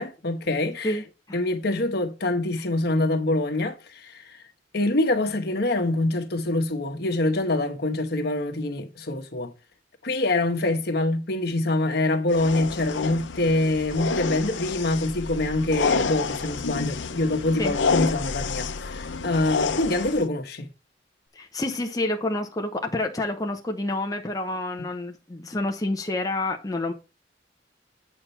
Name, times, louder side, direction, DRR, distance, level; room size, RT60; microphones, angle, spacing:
voice 1, 0.0-1.0 1.3-4.4 4.7-9.5 10.0-20.7, left 2 dB, 60° left, 1.3 m, -25 dB
voice 2, 0.8-1.4 17.6-17.8 21.3-26.9, left 2 dB, 20° left, 0.8 m, -28 dB
sound 1, 12.3-20.2, left 5 dB, 85° left, 0.7 m, -29 dB
8.9 x 4.3 x 5.6 m
head